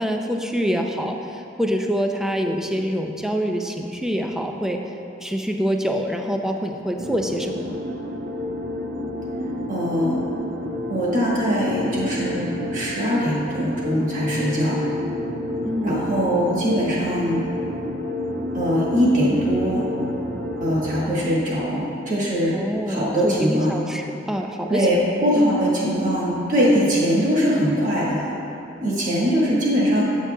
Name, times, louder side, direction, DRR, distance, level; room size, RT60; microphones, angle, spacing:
voice 1, 0.0-4.8 5.2-7.8 15.6-16.0 22.5-24.9 25.3-25.4, equal, 5° right, 3 dB, 0.3 m, -25 dB
sound 1, 7.0-21.0, left 1 dB, 60° right, 0.5 m, -30 dB
voice 2, 9.7-10.2 10.9-14.8 15.8-17.5 18.5-19.9 20.6-22.6 22.9-23.8 24.7-28.3 28.8-30.0, equal, 45° right, -6 dB, 1.4 m, -21 dB
8.0 x 7.3 x 2.2 m, 2.7 s
head